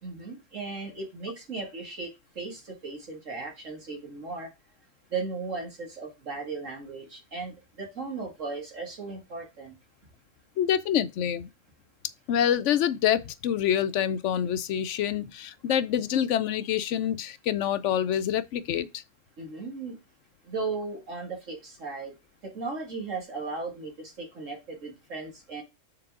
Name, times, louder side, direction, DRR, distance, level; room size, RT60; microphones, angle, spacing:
voice 1, 0.0-4.5 5.1-9.7 19.4-20.0 20.4-22.1 22.4-25.6, right 4 dB, 75° right, 2.6 m, -36 dB
voice 2, 10.6-11.5 12.3-19.0, left 10 dB, 70° left, 0.9 m, -26 dB
6.8 x 4.0 x 3.6 m
omnidirectional pair, 1.3 m